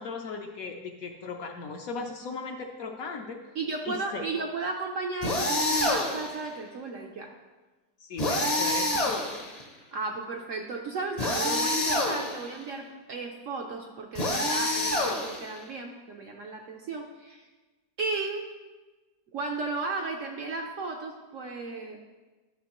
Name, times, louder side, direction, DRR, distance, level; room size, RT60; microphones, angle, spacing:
voice 1, 0.0-3.4 3.8-4.4 8.0-9.4, left 4 dB, 65° left, 3 dB, 0.9 m, -37 dB
voice 2, 3.5-7.3 9.9-17.4 18.0-18.5 19.3-22.0, right 3 dB, 65° right, 2 dB, 0.8 m, -34 dB
sound 1, 5.2-6.4 8.2-9.6 11.2-12.5 14.1-15.6, left 1 dB, 35° left, 0.6 m, -27 dB
11.0 x 5.8 x 3.0 m, 1.2 s
omnidirectional pair, 1.9 m